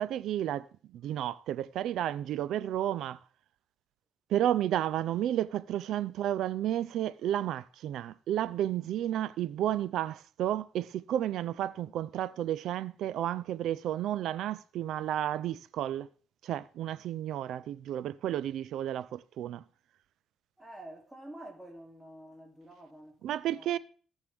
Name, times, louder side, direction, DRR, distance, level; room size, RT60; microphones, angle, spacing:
voice 1, 0.0-3.2 4.3-16.1 16.4-19.6 23.2-23.8, right 11 dB, 80° right, 0.5 m, -32 dB
voice 2, 20.6-23.8, right 1 dB, 10° right, 2.8 m, -49 dB
17.5 x 6.5 x 3.5 m
cardioid pair, 90°, 0 cm